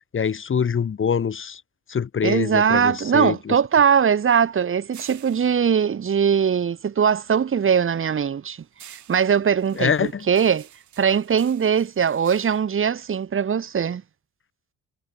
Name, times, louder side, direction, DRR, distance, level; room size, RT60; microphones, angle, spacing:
voice 1, 0.1-1.6 1.9-3.5 9.8-10.3, left 7 dB, 40° left, 2.0 m, -24 dB
voice 2, 2.2-8.6 8.9-10.7 11.0-14.0, right 7 dB, 45° right, 1.9 m, -21 dB
sound 1, 2.6-7.1 7.4-13.9, right 11 dB, 70° right, 7.4 m, -50 dB
cardioid pair, 90°, 30 cm